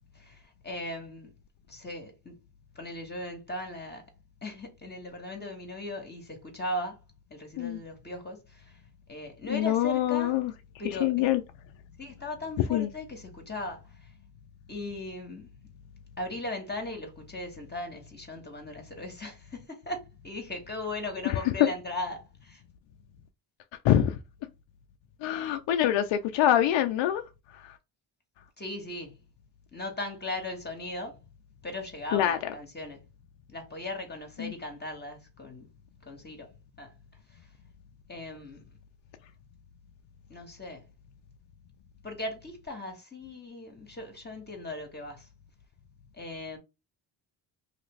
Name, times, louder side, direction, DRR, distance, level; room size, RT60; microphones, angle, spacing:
voice 1, 0.1-1.3 1.7-2.4 2.7-4.1 4.4-7.0 7.3-8.8 9.1-10.3 10.8-11.3 12.0-13.8 14.7-15.5 16.2-22.6 28.6-29.2 29.7-31.2 31.6-33.0 33.5-35.7 36.1-36.5 36.8-36.9 38.1-38.7 40.3-40.8 42.0-45.3 46.1-46.6, left 2 dB, 20° left, 1.2 m, -38 dB
voice 2, 9.5-10.5 10.8-11.4 12.7-12.9 21.2-21.5 23.8-24.2 25.2-27.2 27.5-27.8 32.1-32.5 34.4-34.5, left 11 dB, 65° left, 0.6 m, -25 dB
2.9 x 2.5 x 3.1 m
cardioid pair, 75°, 48 cm